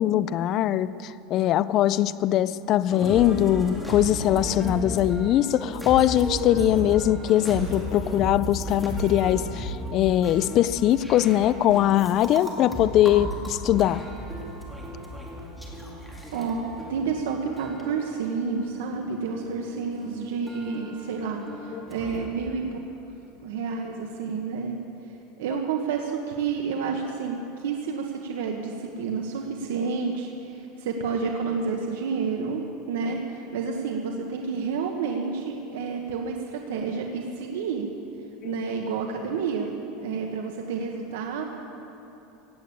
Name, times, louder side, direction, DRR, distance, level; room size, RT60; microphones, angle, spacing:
voice 1, 0.0-14.0 21.7-21.8 38.4-38.6, left 12 dB, 40° left, 17 dB, 0.4 m, -22 dB
sound 1, 2.9-22.3, equal, ahead, 2.1 m, -35 dB
voice 2, 16.3-22.8 23.4-24.8 25.4-37.9 38.4-41.4, right 5 dB, 85° right, 2 dB, 1.2 m, -30 dB
16.5 x 8.7 x 8.5 m, 2.9 s
supercardioid pair, 150°, 0 cm